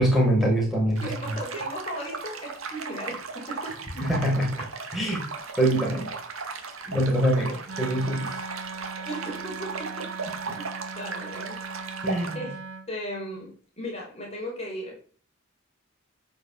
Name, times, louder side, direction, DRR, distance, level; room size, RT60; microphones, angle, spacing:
voice 1, 0.0-1.0 4.0-4.5 4.9-5.2 5.6-6.1 6.9-8.3 12.0-12.4, right 1 dB, ahead, -3 dB, 5.1 m, -23 dB
voice 2, 1.0-3.8 9.0-10.7 10.9-11.9 12.3-12.6 12.9-15.0, equal, 30° left, -1 dB, 5.1 m, -37 dB
sound 1, 1.0-12.4, right 4 dB, 85° right, 2.2 m, -37 dB
Wind instrument woodwind instrument, 7.7-12.9, right 4 dB, 70° right, 2.1 m, -39 dB
14.5 x 6.2 x 7.4 m, 0.43 s
head